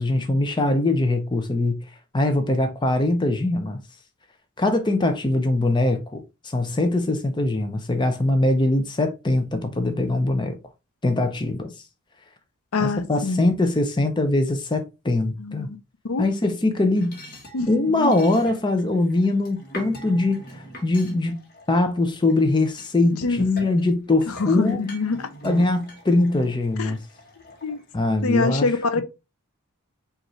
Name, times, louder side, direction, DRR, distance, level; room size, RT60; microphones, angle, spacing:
voice 1, 0.0-1.8 2.1-3.8 4.6-10.6 11.0-11.7 12.8-15.7 16.2-17.2 17.7-21.4 21.7-24.8 25.4-27.0 27.9-28.7, left 2 dB, 20° left, 0.6 m, -22 dB
voice 2, 12.7-13.5 15.4-15.8 16.0-16.3 17.5-18.1 23.2-23.4 24.3-25.3 26.8-27.0 27.6-27.8 28.2-29.0, left 4 dB, 70° left, 0.5 m, -25 dB
sound 1, 16.7-22.3 22.8-28.3, right 1 dB, 40° left, 1.2 m, -43 dB
5.1 x 2.6 x 3.1 m
head